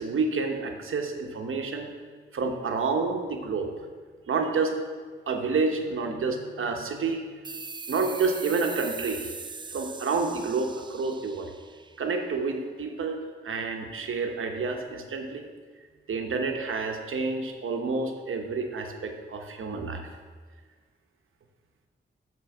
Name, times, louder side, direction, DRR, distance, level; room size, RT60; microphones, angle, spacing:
voice 1, 0.0-1.9 2.3-3.9 4.3-4.8 5.3-7.2 7.9-9.3 9.7-11.5 12.0-13.2 13.4-15.5 16.1-20.1, right 4 dB, 75° right, 4 dB, 1.0 m, -29 dB
sound 1, 7.4-12.6, right 4 dB, 20° right, 0.3 m, -41 dB
6.4 x 5.4 x 7.1 m, 1.5 s
wide cardioid pair, 110°, 21 cm